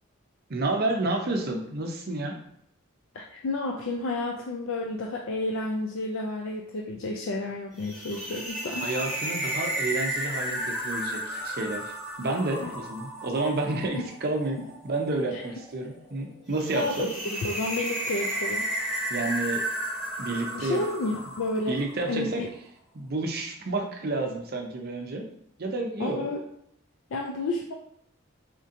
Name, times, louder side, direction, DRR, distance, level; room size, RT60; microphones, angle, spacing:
voice 1, 0.5-2.4 8.8-11.9 12.2-17.1 19.1-19.6 20.2-20.8 21.7-22.4 22.9-25.2 25.6-26.3, right 2 dB, 45° right, 2 dB, 0.6 m, -30 dB
voice 2, 3.1-8.9 12.6-12.7 13.9-14.1 15.3-15.4 16.7-18.7 20.5-21.8 22.1-22.5 26.0-26.4 27.1-27.7, left 2 dB, 65° left, 0 dB, 0.4 m, -31 dB
sound 1, 7.8-22.1, right 1 dB, ahead, 1.4 m, -33 dB
4.3 x 2.7 x 2.5 m, 0.72 s
head